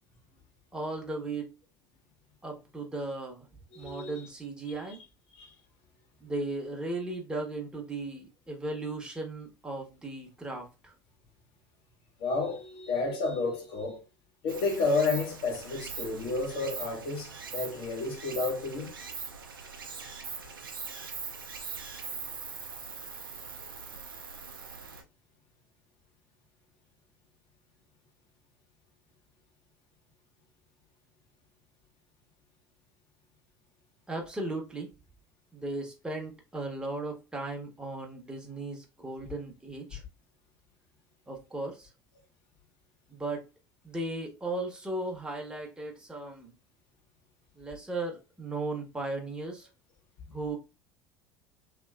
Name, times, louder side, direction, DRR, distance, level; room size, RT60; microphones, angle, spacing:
voice 1, 0.7-1.5 2.4-3.4 3.7-5.0 6.2-10.9 34.1-34.9 35.5-40.0 41.3-41.9 43.1-43.5 43.8-46.5 47.6-49.7 50.3-50.6, right 2 dB, 10° right, 1.1 m, -36 dB
voice 2, 3.7-4.2 5.3-5.5 12.2-14.0 14.4-18.9 39.2-39.3, left 3 dB, 55° left, 1.1 m, -31 dB
Stream, 14.5-25.0, right 5 dB, 85° right, 0.5 m, -42 dB
3.1 x 2.8 x 2.4 m
figure-of-eight pair, 70°, 11 cm